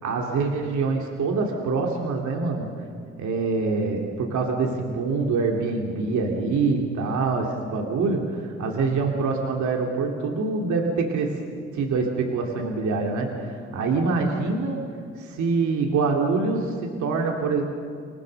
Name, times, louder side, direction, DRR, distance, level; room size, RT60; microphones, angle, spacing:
voice 1, 0.0-2.7 3.2-11.4 11.7-14.8 15.2-17.6, right 4 dB, 70° right, 1 dB, 2.7 m, -25 dB
26.5 x 18.5 x 6.5 m, 2.4 s
cardioid pair, 90°, 30 cm